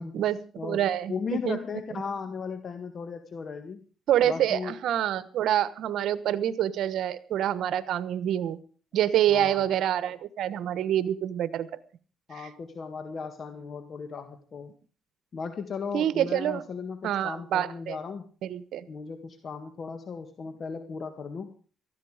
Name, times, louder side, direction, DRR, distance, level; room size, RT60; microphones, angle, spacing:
voice 1, 0.1-1.6 4.1-8.6 8.9-11.7 12.4-12.5 15.9-16.6 17.0-18.0 18.4-18.9, right 11 dB, 75° right, 16 dB, 1.2 m, -27 dB
voice 2, 1.1-3.8 4.2-4.8 9.3-9.6 12.3-14.7 15.3-18.3 18.9-21.5, left 5 dB, 50° left, 8 dB, 1.7 m, -36 dB
18.5 x 14.0 x 5.0 m, 0.40 s
cardioid pair, 90°, 0 cm